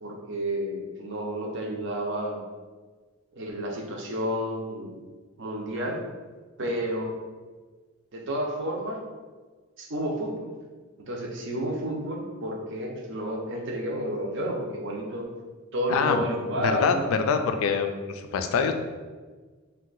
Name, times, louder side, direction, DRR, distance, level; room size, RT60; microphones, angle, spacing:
voice 1, 0.0-2.5 3.3-5.0 5.4-6.0 6.6-7.0 8.1-9.0 9.8-10.5 11.0-15.3 15.7-17.1, equal, 60° right, 0 dB, 0.5 m, -31 dB
voice 2, 15.9-16.2 16.6-18.7, left 5 dB, 80° left, 8 dB, 0.3 m, -25 dB
2.6 x 2.2 x 3.9 m, 1.4 s
head